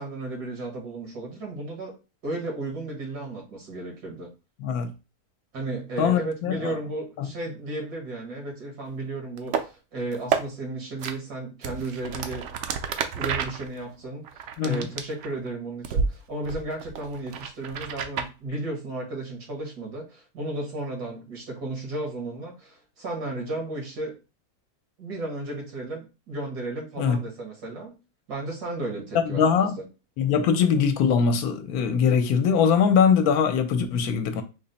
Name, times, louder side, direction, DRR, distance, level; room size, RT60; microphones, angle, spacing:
voice 1, 0.0-2.0 2.2-4.3 5.5-12.5 13.1-24.2 25.0-28.0 28.3-29.8, right 2 dB, 85° right, 2.0 m, -34 dB
voice 2, 6.0-6.8 7.2-7.3 14.6-14.9 27.0-27.2 29.1-29.8 30.2-34.4, left 6 dB, 75° left, 1.0 m, -22 dB
sound 1, 9.4-9.6 10.1-10.4 11.0-11.1 11.6-15.5 15.8-16.1 16.4-18.3, right 6 dB, 70° right, 0.7 m, -30 dB
4.0 x 2.1 x 3.9 m
omnidirectional pair, 1.6 m